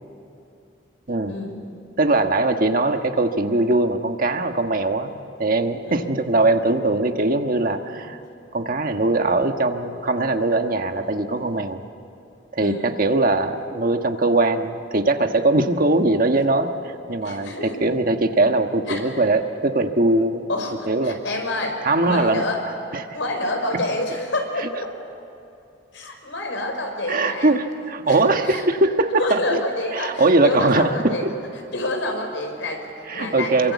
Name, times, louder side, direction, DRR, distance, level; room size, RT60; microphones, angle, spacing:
voice 1, 1.3-1.6 5.8-6.1 12.6-12.9 17.2-17.8 18.9-19.1 20.5-22.6 23.1-24.9 25.9-27.6 28.1-28.6 29.2-31.2 31.7-33.7, left 2 dB, 85° left, 4 dB, 5.0 m, -28 dB
voice 2, 2.0-8.2 8.5-11.8 12.5-20.4 20.9-21.2 21.8-22.4 22.9-23.1 23.7-23.8 27.1-29.6 29.9-31.1 33.1-33.7, right 2 dB, 50° right, 6 dB, 1.4 m, -21 dB
26.5 x 23.5 x 8.4 m, 2.7 s
head